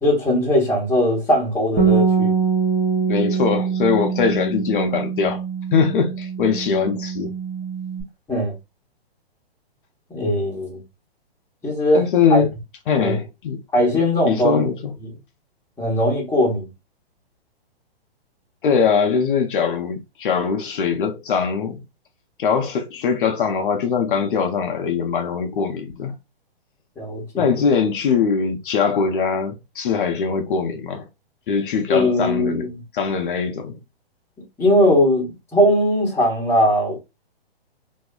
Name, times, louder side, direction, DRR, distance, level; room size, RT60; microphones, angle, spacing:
voice 1, 0.0-2.3 8.3-8.5 10.1-10.8 11.6-12.0 12.3-12.4 13.0-13.2 13.7-14.7 15.0-15.1 15.8-16.7 27.0-27.6 31.9-32.7 34.6-37.0, equal, 10° left, 0.8 m, -19 dB
Bass guitar, 1.8-8.0, right 6 dB, 10° right, 0.4 m, -23 dB
voice 2, 3.1-5.4 5.7-7.3 11.9-12.5 12.9-13.6 14.3-14.9 18.6-21.8 22.4-26.1 27.4-31.1 31.5-32.7 32.9-33.8, left 6 dB, 55° left, 0.5 m, -21 dB
2.7 x 2.4 x 2.2 m
hypercardioid pair, 145°, 31 cm